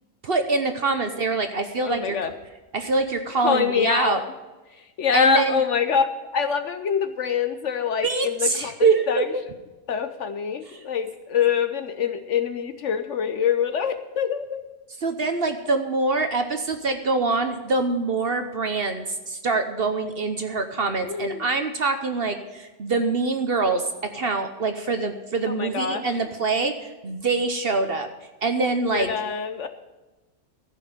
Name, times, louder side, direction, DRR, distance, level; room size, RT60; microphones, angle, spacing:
voice 1, 0.2-2.2 2.7-4.2 5.1-5.6 8.0-9.3 10.7-10.8 15.0-28.1 28.4-29.1, right 3 dB, 45° right, 7 dB, 0.9 m, -24 dB
voice 2, 1.8-2.3 3.4-4.2 5.0-6.1 6.3-8.7 9.1-9.2 9.9-14.6 21.1-21.5 25.6-26.0 28.9-29.7, left 7 dB, 60° left, 9 dB, 1.0 m, -25 dB
14.5 x 5.7 x 9.3 m, 1.1 s
omnidirectional pair, 1.6 m